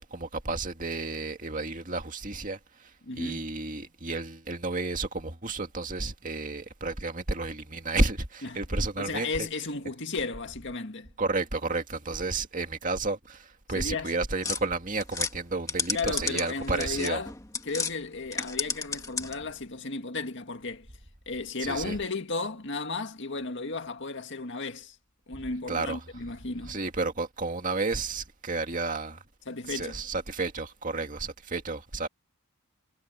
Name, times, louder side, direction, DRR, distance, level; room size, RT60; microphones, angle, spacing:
voice 1, 0.0-9.5 11.2-17.2 21.6-22.0 25.7-26.0 26.6-29.2 29.7-32.1, right 3 dB, 40° right, 2.2 m, -31 dB
voice 2, 3.0-3.4 8.4-8.6 9.0-11.1 13.7-14.1 15.9-17.3 17.6-20.9 21.3-25.0 25.3-26.8 29.5-30.0, left 3 dB, 55° left, 2.0 m, -34 dB
sound 1, 14.4-17.9 18.3-19.5, left 4 dB, 15° left, 2.0 m, -33 dB
head